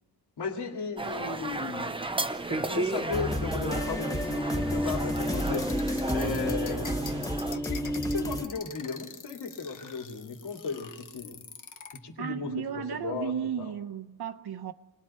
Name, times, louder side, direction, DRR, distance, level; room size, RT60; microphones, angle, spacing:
voice 1, 0.4-1.9 2.5-5.7 6.1-7.0 7.5-11.4 12.0-13.7, left 5 dB, 70° left, 2.9 m, -36 dB
sound 1, 1.0-7.6, right 2 dB, 10° right, 0.7 m, -34 dB
sound 2, 3.1-8.4, equal, 10° left, 1.3 m, -30 dB
sound 3, 5.1-12.0, left 6 dB, 45° left, 1.3 m, -44 dB
voice 2, 12.2-14.7, right 8 dB, 65° right, 1.0 m, -34 dB
28.5 x 21.0 x 4.5 m
wide cardioid pair, 130°, 42 cm